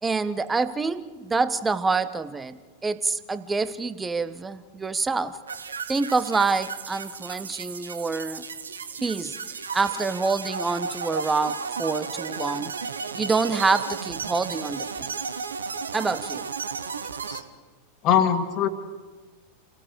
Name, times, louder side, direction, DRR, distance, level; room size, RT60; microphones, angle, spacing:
voice 1, 0.0-5.4 5.9-8.4 9.0-9.3 9.7-12.7 13.1-15.2 15.9-16.4, right 4 dB, 15° right, 13 dB, 1.1 m, -26 dB
sound 1, 5.5-17.4, right 5 dB, 70° right, 1.3 m, -34 dB
voice 2, 18.0-18.7, left 8 dB, 35° left, 7 dB, 2.1 m, -21 dB
29.5 x 18.0 x 5.2 m, 1.3 s
figure-of-eight pair, 90°, 0 cm